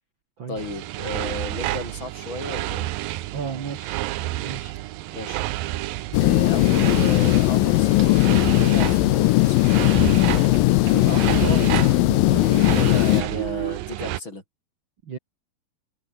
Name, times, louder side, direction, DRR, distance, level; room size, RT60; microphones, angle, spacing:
voice 1, 0.5-2.9 5.1-5.4 6.2-9.9 12.6-14.4, left 2 dB, 35° left, 6.4 m, -34 dB
sound 1, 0.6-14.2, right 16 dB, 80° right, 2.6 m, -30 dB
voice 2, 3.3-4.0 4.4-4.7 10.8-12.4 15.0-15.2, right 6 dB, 40° right, 2.2 m, -33 dB
sound 2, 6.1-13.2, left 21 dB, 85° left, 2.3 m, -18 dB
omnidirectional pair, 4.0 m